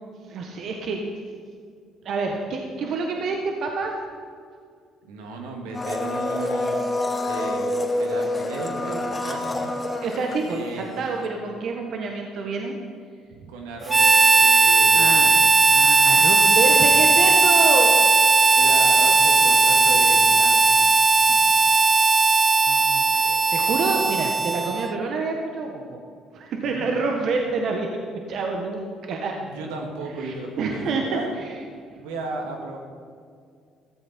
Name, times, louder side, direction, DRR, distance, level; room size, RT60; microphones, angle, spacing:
voice 1, 0.2-1.0 2.0-3.9 10.0-12.8 15.0-17.9 22.7-26.0 26.3-28.0 28.3-29.3 30.2-31.2 31.4-31.5, right 4 dB, 60° right, 2 dB, 1.4 m, -27 dB
voice 2, 5.0-6.8 7.2-9.7 10.5-10.9 13.5-15.4 18.6-20.8 21.2-21.4 26.6-26.9 29.4-31.3 32.0-32.8, right 2 dB, 80° right, 2 dB, 2.2 m, -34 dB
Domestic sounds home sounds, 5.7-11.0 11.3-11.4, left 2 dB, 25° left, 2.1 m, -27 dB
Harmonica, 13.9-25.0, right 4 dB, 30° right, 0.4 m, -17 dB
14.5 x 14.0 x 4.5 m, 2.2 s
hypercardioid pair, 60°, 0 cm